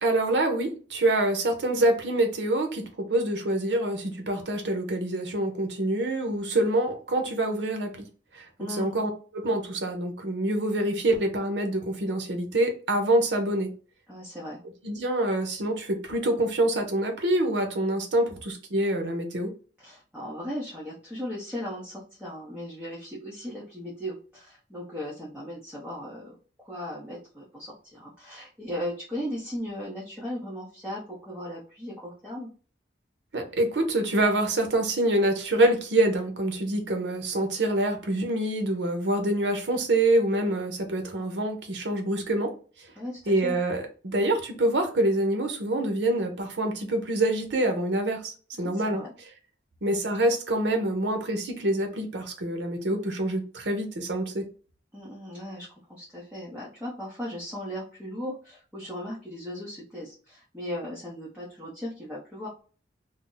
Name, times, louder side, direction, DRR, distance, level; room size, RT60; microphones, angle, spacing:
voice 1, 0.0-8.0 8.3-13.7 14.8-19.5 33.3-42.5 43.3-49.0 49.8-54.5, right 1 dB, 80° right, 5 dB, 0.7 m, -26 dB
voice 2, 8.6-8.9 14.1-14.6 19.8-26.3 26.6-32.5 43.0-43.6 48.6-49.1 54.9-62.5, equal, 5° right, -6 dB, 0.7 m, -37 dB
2.6 x 2.0 x 3.7 m, 0.39 s
head